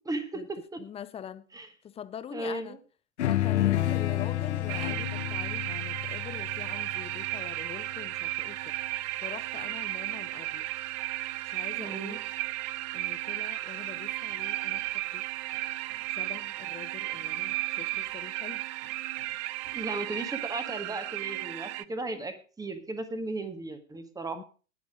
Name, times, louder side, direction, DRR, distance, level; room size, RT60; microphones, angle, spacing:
voice 1, 0.1-0.8 1.5-1.7 2.3-2.8 11.8-12.2 19.7-24.4, right 2 dB, 10° right, 1.8 m, -36 dB
voice 2, 0.8-1.4 1.8-2.8 3.2-8.7 9.2-10.7 11.5-12.2 12.9-15.2 16.1-18.6 24.3-24.4, left 9 dB, 15° left, 0.6 m, -44 dB
sound 1, 3.2-7.9, left 14 dB, 60° left, 1.3 m, -30 dB
sound 2, 4.7-21.8, right 17 dB, 30° right, 0.5 m, -34 dB
sound 3, 13.9-15.2 15.5-20.2, right 4 dB, 50° right, 7.6 m, -61 dB
19.5 x 7.2 x 5.0 m
figure-of-eight pair, 95°, 38 cm